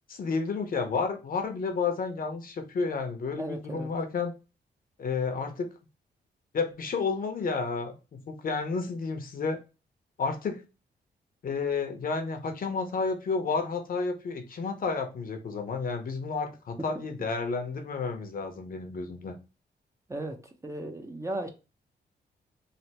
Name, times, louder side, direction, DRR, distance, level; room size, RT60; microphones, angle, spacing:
voice 1, 0.1-4.3 5.0-5.7 6.5-9.6 10.2-10.6 11.4-19.3, left 4 dB, 50° left, 0.7 m, -31 dB
voice 2, 3.4-3.9 20.1-20.4 20.6-21.5, right 1 dB, 15° right, 0.5 m, -35 dB
3.2 x 2.5 x 2.8 m
cardioid pair, 110°, 18 cm